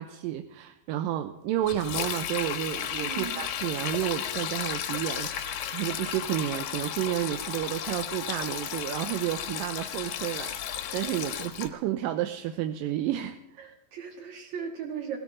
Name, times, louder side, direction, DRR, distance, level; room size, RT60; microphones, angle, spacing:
voice 1, 0.0-13.7, right 13 dB, 80° right, 8 dB, 2.3 m, -31 dB
Sink (filling or washing), 1.6-11.7, left 10 dB, 70° left, 2.1 m, -34 dB
voice 2, 3.0-3.3 11.2-11.3 13.6-15.2, right 7 dB, 55° right, 1 dB, 3.7 m, -37 dB
18.5 x 17.0 x 3.8 m, 0.82 s
omnidirectional pair, 4.2 m